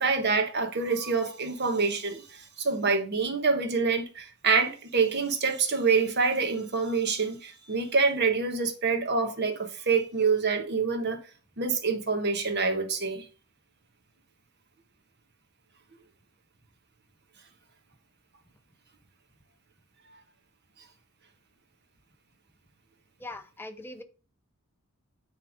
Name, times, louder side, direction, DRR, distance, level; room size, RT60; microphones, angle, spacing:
voice 1, 0.0-11.2 11.6-13.2, right 4 dB, 50° right, 1.2 m, -26 dB
voice 2, 23.2-24.0, left 2 dB, 10° left, 0.7 m, -41 dB
9.4 x 3.5 x 5.0 m
head